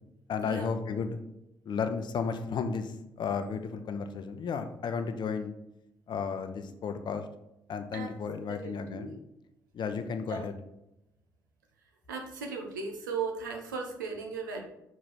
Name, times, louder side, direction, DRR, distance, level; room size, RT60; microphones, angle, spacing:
voice 1, 0.3-1.2 1.6-5.5 6.1-7.2 7.7-9.2 9.7-10.5, left 5 dB, 45° left, 8 dB, 0.7 m, -33 dB
voice 2, 8.5-9.1 10.3-10.5 12.1-14.6, right 5 dB, 80° right, 2 dB, 0.8 m, -37 dB
5.9 x 4.7 x 4.2 m, 0.88 s
figure-of-eight pair, 45°, 10 cm